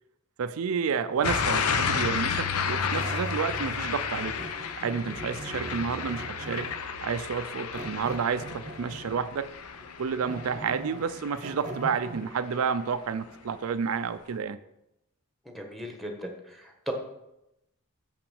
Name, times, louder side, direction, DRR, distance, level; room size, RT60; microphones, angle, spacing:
voice 1, 0.4-4.4 4.8-6.7 7.0-9.5 10.0-14.6, right 6 dB, 70° right, 12 dB, 0.4 m, -30 dB
sound 1, 1.1-4.0 4.2-6.9 7.7-9.3 9.8-12.3, right 1 dB, 35° right, 0.8 m, -42 dB
sound 2, 1.2-12.1 12.5-12.9, left 6 dB, 85° left, 0.7 m, -32 dB
voice 2, 15.4-16.9, equal, ahead, 2 dB, 1.3 m, -37 dB
7.2 x 5.8 x 7.0 m, 0.88 s
head